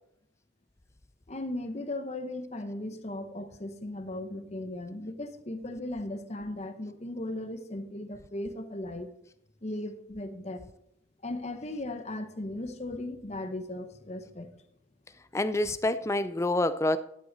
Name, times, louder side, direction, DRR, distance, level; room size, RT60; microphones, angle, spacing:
voice 1, 1.3-9.1 9.6-10.6 11.2-14.5, left 1 dB, 35° left, 0.8 m, -37 dB
voice 2, 15.3-17.0, left 1 dB, 15° left, 0.4 m, -27 dB
12.0 x 8.0 x 3.9 m
head